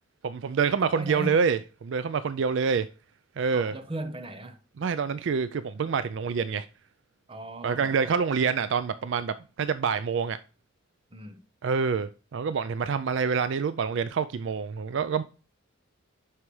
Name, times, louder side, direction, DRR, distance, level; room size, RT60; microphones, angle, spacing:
voice 1, 0.2-2.9 3.4-3.7 4.8-6.7 7.6-10.4 11.6-15.2, right 6 dB, 55° right, 0.3 m, -27 dB
voice 2, 1.0-1.5 3.5-4.6 7.3-7.9 11.1-11.4, right 1 dB, 25° right, 0.9 m, -37 dB
11.5 x 4.7 x 3.2 m
head